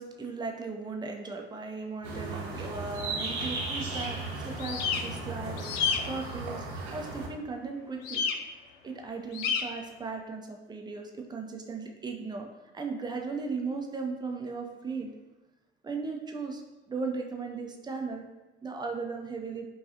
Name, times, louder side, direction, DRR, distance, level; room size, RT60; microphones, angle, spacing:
voice 1, 0.0-5.7 5.9-6.7 6.9-8.3 8.8-12.5 12.7-15.1 15.8-16.6 16.9-18.2 18.6-19.7, right 4 dB, 15° right, 2 dB, 0.5 m, -37 dB
sound 1, 2.0-7.3, right 2 dB, 60° right, 0.9 m, -36 dB
sound 2, 4.6-5.0 5.6-6.0 8.0-8.3 9.3-9.6, left 6 dB, 60° left, 0.5 m, -29 dB
5.3 x 2.3 x 2.7 m, 1.1 s
figure-of-eight pair, 55°, 31 cm